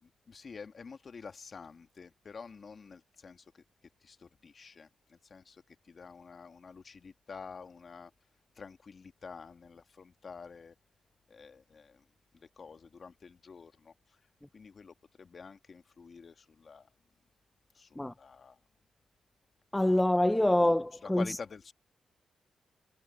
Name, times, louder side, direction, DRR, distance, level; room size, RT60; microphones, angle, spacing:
voice 1, 0.0-3.6 4.0-8.1 8.5-10.7 11.3-12.0 12.3-14.2 14.5-16.9 17.7-18.6 21.0-21.7, left 5 dB, 50° left, 1.7 m, -48 dB
voice 2, 19.7-21.3, left 1 dB, 10° left, 0.4 m, -25 dB
cardioid pair, 65°, 0 cm